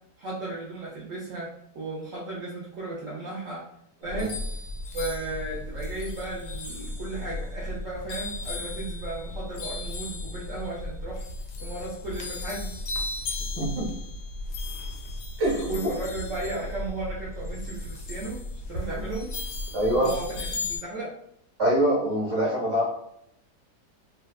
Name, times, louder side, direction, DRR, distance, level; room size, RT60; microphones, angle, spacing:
voice 1, 0.2-3.6 4.0-4.4 4.9-11.2 11.6-12.8 15.6-18.4 18.7-19.3 19.9-21.1, right 2 dB, 65° right, -5 dB, 0.8 m, -35 dB
sound 1, 4.0-20.8, left 2 dB, 85° left, 1.2 m, -35 dB
voice 2, 13.6-13.9 15.4-15.9 19.0-19.1 19.7-20.1 21.6-22.9, right 1 dB, 20° right, -5 dB, 0.7 m, -24 dB
2.8 x 2.2 x 2.3 m, 0.76 s
omnidirectional pair, 1.8 m